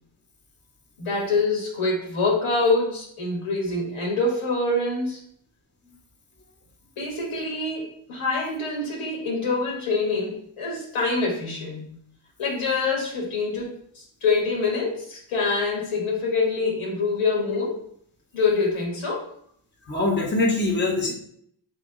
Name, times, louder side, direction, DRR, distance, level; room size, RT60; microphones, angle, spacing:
voice 1, 1.0-5.2 7.0-11.9 12.4-17.8 18.3-19.3, left 3 dB, 80° left, -2 dB, 1.4 m, -25 dB
voice 2, 19.8-21.1, left 2 dB, 20° left, 0 dB, 1.1 m, -23 dB
3.0 x 3.0 x 3.7 m, 0.65 s
supercardioid pair, 50°, 50 cm